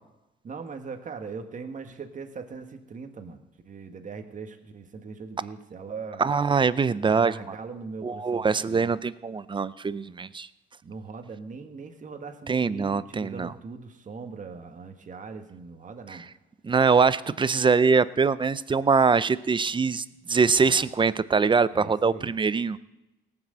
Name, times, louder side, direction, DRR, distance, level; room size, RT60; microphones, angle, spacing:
voice 1, 0.4-6.3 7.0-8.9 10.8-16.3 20.6-20.9 21.7-22.3, right 5 dB, 40° right, 6 dB, 1.5 m, -40 dB
voice 2, 6.2-7.3 8.0-10.5 12.5-13.5 16.6-22.8, right 5 dB, 25° right, 17 dB, 0.5 m, -23 dB
18.0 x 6.1 x 7.9 m, 0.97 s
cardioid pair, 90°, 20 cm